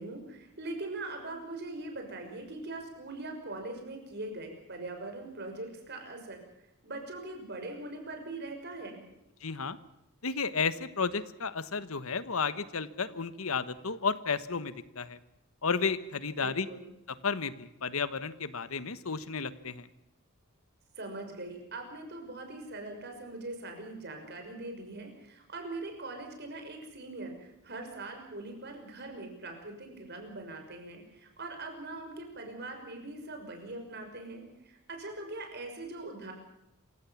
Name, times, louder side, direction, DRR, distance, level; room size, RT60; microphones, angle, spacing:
voice 1, 0.0-6.4 6.8-9.1 16.4-16.9 21.0-36.3, right 2 dB, 50° right, 4 dB, 6.1 m, -41 dB
voice 2, 9.4-9.8 10.2-15.2 15.6-16.7 17.2-19.9, left 5 dB, 80° left, 14 dB, 1.2 m, -32 dB
27.0 x 16.5 x 7.2 m, 0.87 s
head